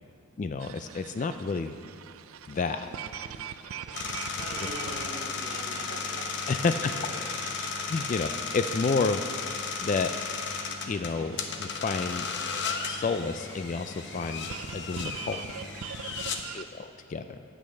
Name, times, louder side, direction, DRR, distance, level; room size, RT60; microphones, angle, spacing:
voice 1, 0.4-1.7 2.5-2.8 6.5-6.9 7.9-8.3 8.5-9.3 9.8-10.3 10.8-12.3 12.8-15.4 16.5-17.4, left 4 dB, 35° left, 9 dB, 0.3 m, -30 dB
sound 1, 0.6-16.6, right 8 dB, 75° right, 0.4 m, -44 dB
voice 2, 2.6-4.0 4.4-8.0 16.2-16.6, right 1 dB, 40° right, -4 dB, 2.5 m, -45 dB
sound 2, 3.9-16.4, left 5 dB, 55° left, 0.8 m, -35 dB
9.5 x 8.3 x 6.8 m, 2.3 s
head